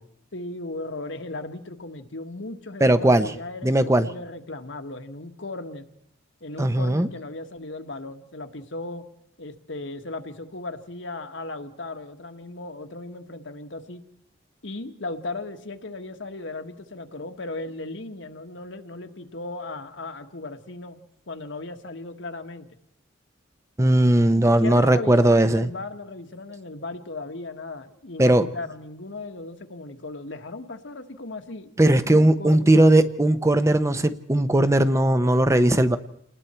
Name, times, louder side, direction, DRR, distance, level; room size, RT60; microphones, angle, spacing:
voice 1, 0.3-5.9 6.4-9.1 9.4-14.0 14.6-21.0 21.3-22.7 24.3-31.7 32.0-32.9, left 2 dB, 65° left, 6 dB, 1.5 m, -36 dB
voice 2, 2.8-3.3 3.6-4.1 6.6-7.1 23.8-25.7 28.2-28.4 31.8-36.0, right 1 dB, 15° right, 11 dB, 0.7 m, -18 dB
29.0 x 20.0 x 4.4 m, 0.73 s
head